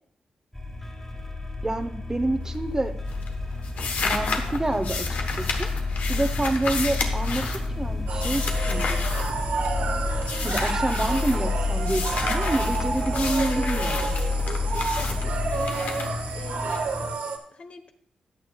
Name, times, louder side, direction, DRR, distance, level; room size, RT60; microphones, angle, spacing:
sound 1, 0.5-17.1, left 3 dB, 15° left, 2.0 m, -29 dB
voice 1, 1.6-2.9 4.0-5.1 5.3-5.7 6.1-9.1 10.4-14.1, right 2 dB, 25° right, 9 dB, 0.8 m, -28 dB
sound 2, 2.4-2.8 3.1-9.9 10.2-11.4 11.8-16.8, left 4 dB, 85° left, 1.1 m, -32 dB
sound 3, 8.1-17.4, right 4 dB, 85° right, 1.0 m, -31 dB
voice 2, 14.5-17.1 17.5-17.9, left 4 dB, 60° left, 7 dB, 1.0 m, -42 dB
14.5 x 9.4 x 2.3 m, 0.64 s
cardioid pair, 70°, 3 cm